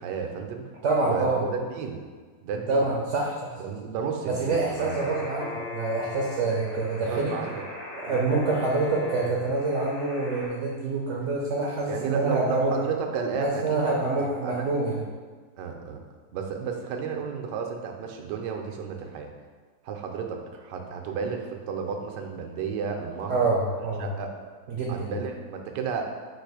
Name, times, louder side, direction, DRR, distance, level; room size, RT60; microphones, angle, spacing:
voice 1, 0.0-0.7 1.0-2.0 2.4-2.9 3.6-5.0 7.1-7.6 8.1-8.2 11.9-14.7 15.6-16.0 16.3-19.3 19.8-23.4 24.0-24.4 24.9-26.1, right 6 dB, 85° right, 3 dB, 1.2 m, -32 dB
voice 2, 0.8-1.4 2.7-3.7 4.3-7.3 8.0-12.9 13.4-15.0 23.3-24.1 24.7-25.1, right 3 dB, 65° right, -2 dB, 0.7 m, -26 dB
sound 1, 4.8-10.5, left 3 dB, 55° left, 1.3 m, -38 dB
4.5 x 2.5 x 4.7 m, 1.5 s
omnidirectional pair, 1.8 m